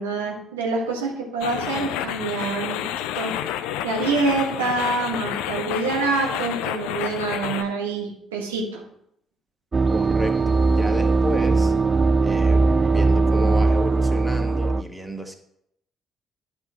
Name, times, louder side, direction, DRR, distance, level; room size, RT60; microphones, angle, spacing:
voice 1, 0.0-2.8 3.1-8.8, right 3 dB, 85° right, -1 dB, 1.6 m, -26 dB
sound 1, 1.4-7.6, left 11 dB, 75° left, 0.4 m, -29 dB
sound 2, 9.7-14.8, right 3 dB, 35° right, 0.4 m, -19 dB
voice 2, 9.9-11.7 12.2-12.6 12.9-15.3, equal, 10° right, 5 dB, 1.4 m, -32 dB
11.0 x 5.6 x 3.0 m, 0.75 s
hypercardioid pair, 45°, 0 cm